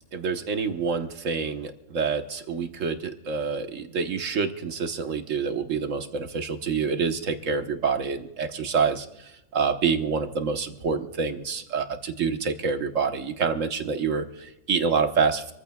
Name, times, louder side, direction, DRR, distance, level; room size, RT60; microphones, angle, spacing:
voice 1, 0.1-15.5, right 5 dB, 70° right, 7 dB, 1.4 m, -27 dB
26.5 x 14.5 x 2.3 m, 0.89 s
omnidirectional pair, 1.4 m